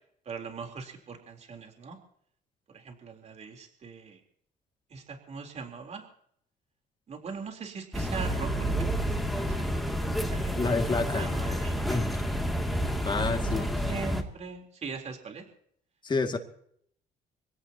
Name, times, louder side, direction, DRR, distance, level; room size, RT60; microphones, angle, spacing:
voice 1, 0.3-2.0 2.7-4.2 4.9-6.0 7.1-9.8 10.3-10.8 11.1-12.0 12.7-15.5, right 5 dB, 40° right, 3 dB, 3.8 m, -41 dB
sound 1, 7.9-14.2, equal, ahead, 2.6 m, -29 dB
voice 2, 10.6-11.3 11.9-12.1 13.1-13.7 16.0-16.4, left 3 dB, 25° left, 5 dB, 2.4 m, -28 dB
25.0 x 17.0 x 3.0 m, 0.66 s
cardioid pair, 110°, 17 cm